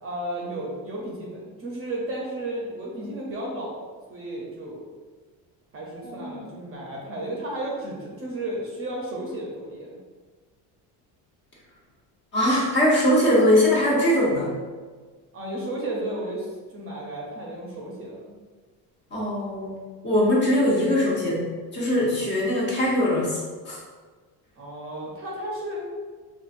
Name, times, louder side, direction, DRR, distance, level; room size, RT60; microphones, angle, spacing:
voice 1, 0.0-4.8 5.7-10.0 15.3-18.3 24.6-25.9, right 1 dB, 35° right, -3 dB, 0.7 m, -33 dB
voice 2, 12.3-14.5 19.1-21.4 21.7-23.8, left 1 dB, 25° left, -5 dB, 0.9 m, -21 dB
5.5 x 2.5 x 2.5 m, 1.5 s
cardioid pair, 155°, 41 cm